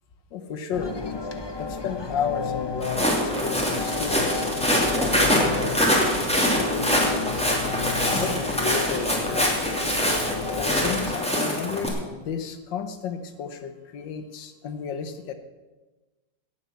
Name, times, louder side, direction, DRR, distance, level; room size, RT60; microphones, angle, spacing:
voice 1, 0.3-1.0 1.6-7.5 8.0-9.9 10.5-15.3, left 6 dB, 85° left, 8 dB, 1.7 m, -33 dB
sound 1, 0.7-11.1, left 4 dB, 45° left, 0.3 m, -32 dB
Walk footsteps, 2.8-11.9, equal, 5° left, 2.6 m, -24 dB
17.0 x 7.5 x 7.1 m, 1.2 s
omnidirectional pair, 1.9 m